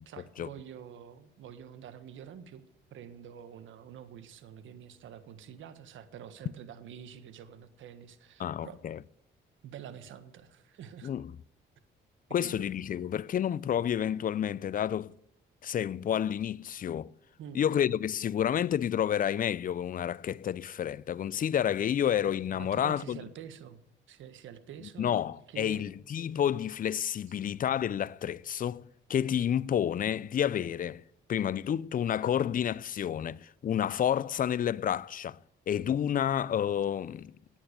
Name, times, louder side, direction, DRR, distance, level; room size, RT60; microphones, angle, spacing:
voice 1, 0.0-2.6 2.9-8.8 9.6-11.1 12.3-12.7 17.4-17.7 22.6-23.8 24.1-25.2 25.5-25.9 27.3-27.4, right 8 dB, 80° right, 1.5 m, -47 dB
voice 2, 8.4-9.0 11.0-11.3 12.3-15.1 15.6-17.1 17.5-23.2 25.0-31.0 31.3-35.4 35.7-37.3, left 9 dB, 45° left, 0.5 m, -30 dB
18.0 x 9.4 x 6.8 m
cardioid pair, 90°, 20 cm